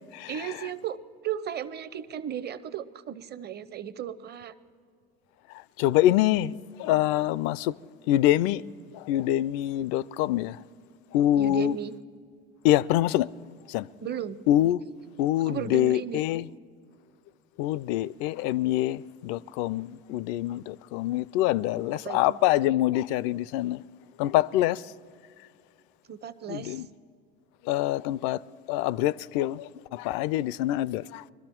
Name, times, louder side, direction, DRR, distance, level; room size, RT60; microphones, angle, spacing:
voice 1, 0.3-1.0 1.2-4.5 11.4-11.9 14.0-14.4 15.4-16.3 21.9-22.4 26.1-26.8, right 10 dB, 35° right, 0.7 m, -35 dB
voice 2, 5.8-7.7 8.1-8.6 8.9-10.6 11.1-11.8 12.6-13.3 13.7-13.9 14.5-14.8 15.2-16.4 17.6-23.8 24.2-24.8 26.5-26.9 27.7-28.4 28.7-31.2, left 14 dB, 65° left, 0.4 m, -25 dB
22.0 x 13.0 x 4.5 m
hypercardioid pair, 75°, 31 cm